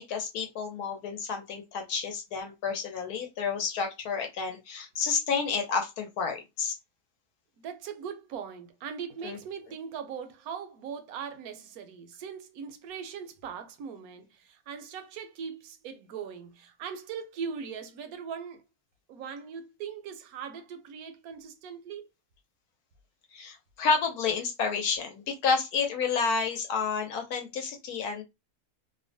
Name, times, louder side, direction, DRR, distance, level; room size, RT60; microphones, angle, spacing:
voice 1, 0.0-6.8 9.2-9.4 23.3-28.2, left 5 dB, 80° left, 1.2 m, -30 dB
voice 2, 7.6-18.6 19.1-22.1, right 7 dB, 75° right, 1.0 m, -40 dB
2.8 x 2.1 x 2.6 m
omnidirectional pair, 1.6 m